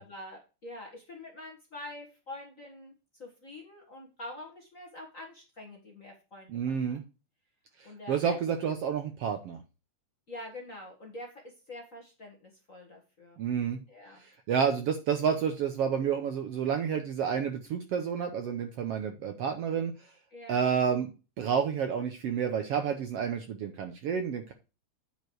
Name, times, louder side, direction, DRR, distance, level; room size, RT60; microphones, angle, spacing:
voice 1, 0.0-2.9 3.2-7.0 7.8-8.4 10.3-13.4 13.9-14.2 20.3-20.7, left 1 dB, 35° left, 0 dB, 1.6 m, -46 dB
voice 2, 6.5-7.0 8.1-9.6 13.4-13.8 14.5-19.9 20.5-21.1 21.4-24.5, right 7 dB, 65° right, 6 dB, 1.6 m, -29 dB
9.2 x 5.2 x 4.6 m, 0.30 s
omnidirectional pair, 3.5 m